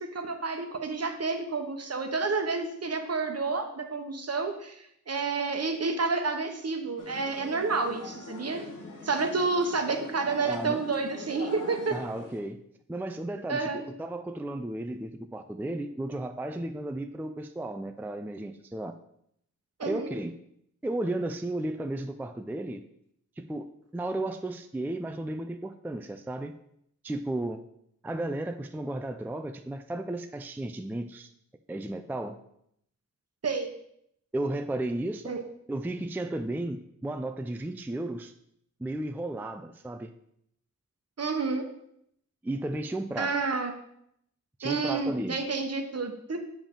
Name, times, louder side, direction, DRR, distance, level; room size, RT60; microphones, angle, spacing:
voice 1, 0.0-8.6 9.0-12.0 13.5-13.8 19.8-20.1 33.4-33.7 35.2-35.4 41.2-41.7 43.2-43.7 44.6-46.4, right 4 dB, 55° right, 5 dB, 0.9 m, -30 dB
sound 1, 7.0-12.4, left 3 dB, 80° left, 1.3 m, -44 dB
voice 2, 10.4-10.8 11.9-12.6 12.9-18.9 19.8-20.4 20.8-22.8 23.4-23.7 23.9-26.5 27.0-27.6 28.0-31.3 31.7-32.4 34.3-35.4 35.7-38.3 38.8-40.1 42.4-43.3 44.6-45.4, right 1 dB, 5° right, 8 dB, 0.3 m, -34 dB
7.2 x 5.1 x 3.7 m, 0.72 s
wide cardioid pair, 75°, 31 cm